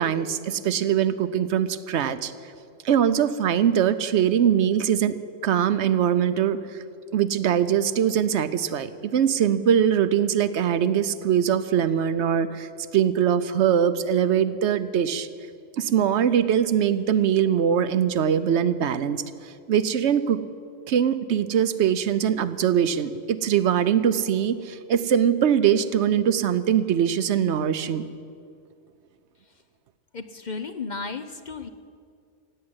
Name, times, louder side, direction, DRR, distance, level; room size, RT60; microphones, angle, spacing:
voice 1, 0.0-2.3 2.8-5.2 5.4-6.8 7.1-15.3 15.8-20.4 20.9-28.1, right 9 dB, 70° right, 13 dB, 0.9 m, -22 dB
voice 2, 30.1-31.7, left 4 dB, 45° left, 9 dB, 0.7 m, -34 dB
16.5 x 8.7 x 9.5 m, 2.3 s
omnidirectional pair, 1.2 m